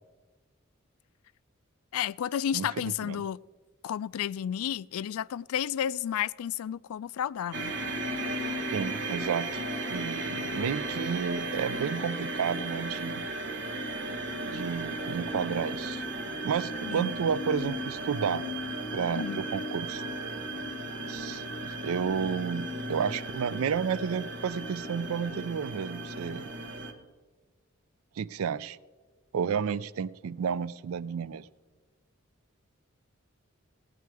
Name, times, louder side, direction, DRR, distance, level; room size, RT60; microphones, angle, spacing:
voice 1, 1.9-3.4 3.8-7.7 16.8-17.1 19.1-19.4, left 9 dB, 90° left, 0.3 m, -32 dB
voice 2, 2.5-3.2 8.7-9.6 9.9-13.2 14.4-16.0 16.4-18.4 18.9-20.0 21.1-26.5 28.2-28.8 29.3-31.5, right 7 dB, 85° right, 0.4 m, -31 dB
sound 1, 7.5-26.9, right 1 dB, 55° right, 1.2 m, -35 dB
17.0 x 9.2 x 4.7 m
head